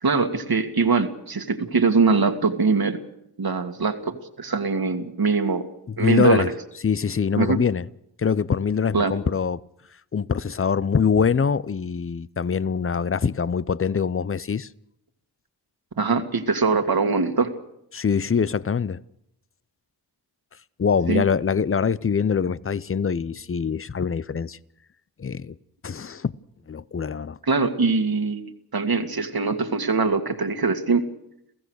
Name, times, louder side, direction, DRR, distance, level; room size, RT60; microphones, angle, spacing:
voice 1, 0.0-3.0 3.4-5.7 6.0-6.5 7.4-7.6 8.9-9.1 16.0-17.5 21.1-21.2 27.4-28.4 28.7-31.1, right 4 dB, 60° right, 2.1 m, -22 dB
voice 2, 5.9-6.5 6.8-7.9 8.2-9.6 10.1-14.7 17.9-19.0 20.8-24.6 25.2-25.5 25.8-26.3 26.7-27.4, left 6 dB, 30° left, 0.7 m, -23 dB
28.0 x 15.5 x 6.5 m
cardioid pair, 45°, 42 cm